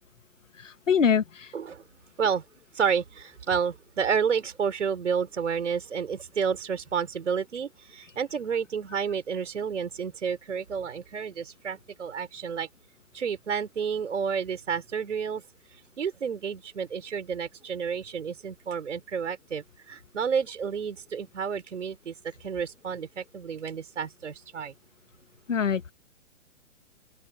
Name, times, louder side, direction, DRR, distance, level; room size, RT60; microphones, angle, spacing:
voice 1, 0.6-1.5 25.5-25.9, left 7 dB, 90° left, 1.4 m, -24 dB
voice 2, 1.5-1.9 2.2-2.4 2.7-12.7 13.1-15.4 16.0-22.1 22.4-24.7, right 6 dB, 75° right, 5.4 m, -30 dB
open air
hypercardioid pair, 135°, 37 cm